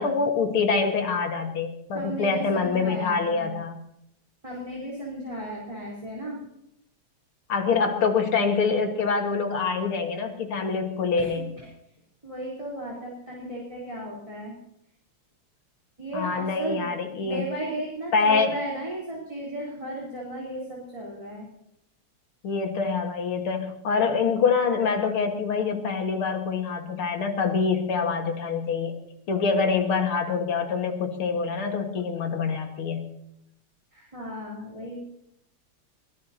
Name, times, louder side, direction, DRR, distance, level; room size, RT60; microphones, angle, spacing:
voice 1, 0.0-3.8 7.5-11.5 16.1-17.4 18.1-18.5 22.4-28.9 29.3-33.1, left 5 dB, 80° left, 3 dB, 2.6 m, -25 dB
voice 2, 1.9-3.5 4.4-6.4 11.2-11.7 12.2-14.6 16.0-16.8 17.2-21.5 33.9-35.0, right 1 dB, 15° right, -3 dB, 3.8 m, -35 dB
23.0 x 17.5 x 2.9 m, 0.76 s
omnidirectional pair, 2.3 m